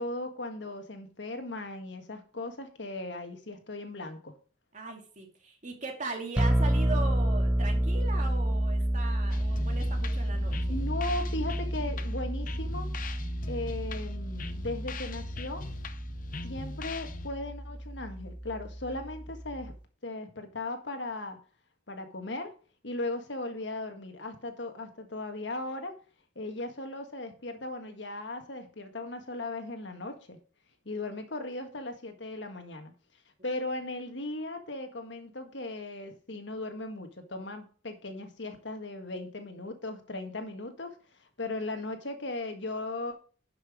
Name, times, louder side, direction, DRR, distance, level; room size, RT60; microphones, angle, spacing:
voice 1, 0.0-4.3 10.7-12.9 13.5-15.6 16.4-19.7 20.0-21.4 21.9-22.5 22.8-26.0 26.3-30.4 30.8-32.9 33.4-43.2, left 2 dB, 70° left, 6 dB, 1.7 m, -37 dB
voice 2, 4.7-10.8, right 3 dB, 40° right, 2 dB, 2.4 m, -39 dB
sound 1, 6.4-19.8, right 1 dB, 5° right, 0.7 m, -30 dB
sound 2, 9.3-17.3, left 4 dB, 45° left, 0.8 m, -42 dB
11.0 x 6.1 x 5.0 m, 0.39 s
head